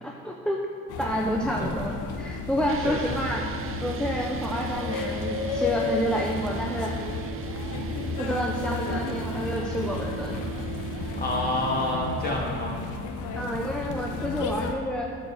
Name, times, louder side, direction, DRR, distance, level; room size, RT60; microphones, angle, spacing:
voice 1, 0.0-0.6 1.0-3.4 3.8-6.9 8.2-10.4 13.3-15.1, equal, 5° left, -1 dB, 0.7 m, -29 dB
sound 1, 0.9-14.7, left 4 dB, 85° left, 0.9 m, -33 dB
sound 2, 2.7-12.2, right 10 dB, 45° right, 0.4 m, -38 dB
voice 2, 11.2-12.8, left 1 dB, 30° left, -3 dB, 2.4 m, -28 dB
8.6 x 5.2 x 7.1 m, 2.6 s
cardioid pair, 90°, 30 cm